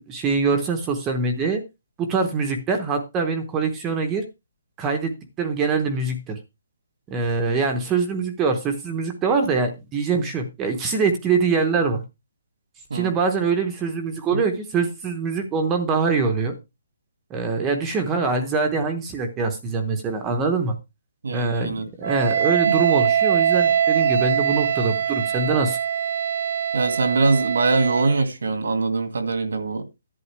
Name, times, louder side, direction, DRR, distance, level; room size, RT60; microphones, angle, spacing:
voice 1, 0.0-1.6 2.0-4.2 4.8-6.4 7.1-12.0 12.9-16.6 17.3-20.8 21.3-25.8, right 4 dB, 10° right, 0.9 m, -24 dB
voice 2, 21.2-21.9 22.7-22.8 26.7-29.8, right 3 dB, 80° right, 2.0 m, -22 dB
Wind instrument woodwind instrument, 22.0-28.2, right 8 dB, 50° right, 0.7 m, -22 dB
11.0 x 9.0 x 3.3 m
hypercardioid pair, 175°, 0 cm